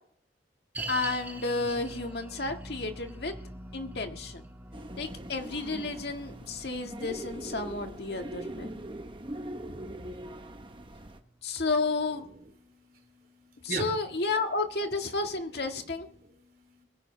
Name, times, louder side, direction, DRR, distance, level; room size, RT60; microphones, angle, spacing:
sound 1, 0.7-12.0 12.3-12.4 13.0-13.1, right 2 dB, 10° right, 1.7 m, -45 dB
voice 1, 0.9-3.3 3.7-4.4 5.0-8.7 9.6-9.8 11.4-12.3 13.6-16.1, left 3 dB, 65° left, 4 dB, 1.8 m, -32 dB
sound 2, 4.7-11.2, right 1 dB, 30° right, 1.0 m, -41 dB
voice 2, 12.4-13.9 16.2-16.8, right 3 dB, 55° right, 4 dB, 3.1 m, -40 dB
22.5 x 10.0 x 3.3 m, 0.65 s
head